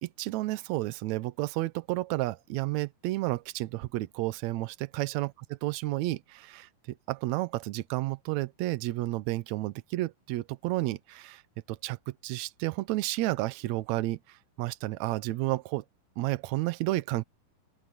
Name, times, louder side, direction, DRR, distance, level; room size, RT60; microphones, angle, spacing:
voice 1, 0.0-5.3 5.6-11.4 11.7-15.8 16.2-17.2, right 18 dB, 85° right, 1.6 m, -31 dB
open air
omnidirectional pair, 4.1 m